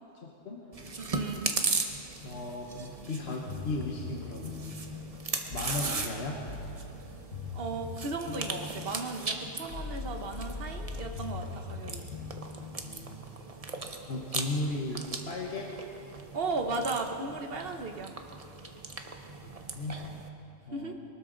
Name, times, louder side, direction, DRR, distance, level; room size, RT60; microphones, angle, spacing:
voice 1, 0.2-0.7 2.2-5.0 5.5-6.4 12.8-13.6 14.1-15.7 19.4-20.0 20.7-20.9, left 2 dB, 50° left, -1 dB, 1.3 m, -36 dB
Chewing mastication, 0.7-20.3, right 3 dB, 30° right, 0.8 m, -38 dB
voice 2, 1.0-1.6 7.5-12.0 16.3-18.1 20.7-20.9, right 3 dB, 45° right, 5 dB, 1.2 m, -35 dB
sound 1, 2.9-8.3, left 3 dB, 20° left, 2.7 m, -56 dB
sound 2, 3.5-13.3, left 4 dB, 65° left, 1.8 m, -41 dB
22.5 x 13.0 x 3.9 m, 2.7 s
omnidirectional pair, 1.4 m